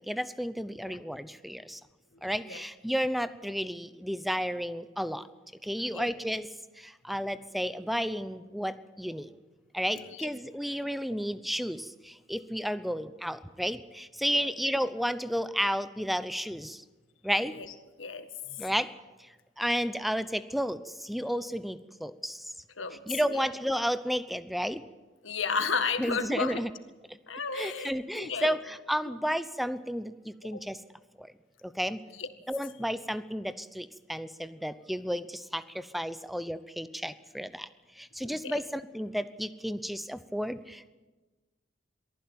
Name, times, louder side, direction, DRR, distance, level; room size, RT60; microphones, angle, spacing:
voice 1, 0.0-1.8 2.2-5.2 5.6-6.5 6.8-9.3 9.7-16.8 17.2-17.5 18.6-18.9 19.6-22.4 23.1-24.8 26.0-26.7 27.1-27.2 27.5-30.8 31.2-31.3 31.6-32.0 32.5-37.7 38.0-40.9, equal, ahead, 14 dB, 0.7 m, -32 dB
voice 2, 2.2-2.6 5.8-6.1 10.0-10.3 14.3-14.5 17.5-17.7 18.0-18.7 22.8-23.0 23.3-23.5 25.2-26.6 27.3-28.6 30.5-30.6 32.1-32.3 38.2-38.6, left 5 dB, 85° left, 9 dB, 1.8 m, -34 dB
22.5 x 15.0 x 8.7 m, 1.2 s
head